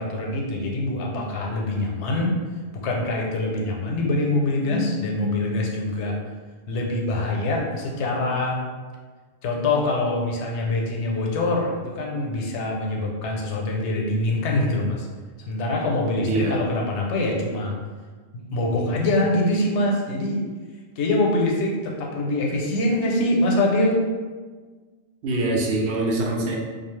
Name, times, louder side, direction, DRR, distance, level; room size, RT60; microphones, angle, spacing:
voice 1, 0.0-2.4 2.8-6.2 6.7-8.6 9.4-15.1 15.5-17.8 18.5-20.4 21.0-24.0, left 2 dB, 85° left, -1 dB, 0.9 m, -24 dB
voice 2, 4.6-5.6 16.2-16.6 25.2-26.6, right 1 dB, 80° right, -1 dB, 0.9 m, -25 dB
2.5 x 2.3 x 3.1 m, 1.4 s
omnidirectional pair, 1.1 m